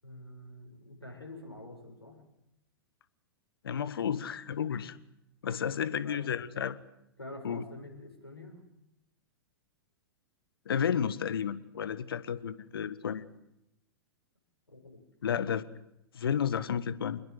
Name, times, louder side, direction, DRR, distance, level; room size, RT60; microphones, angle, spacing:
voice 1, 0.0-2.2 5.7-6.3 7.2-8.6 14.7-15.0, left 1 dB, 85° left, 3 dB, 6.7 m, -47 dB
voice 2, 3.6-5.0 5.4-6.8 7.4-7.6 10.6-13.3 15.2-15.6 16.1-17.2, left 8 dB, 65° left, 15 dB, 1.6 m, -32 dB
27.0 x 21.0 x 7.9 m, 0.84 s
figure-of-eight pair, 105°, 13 cm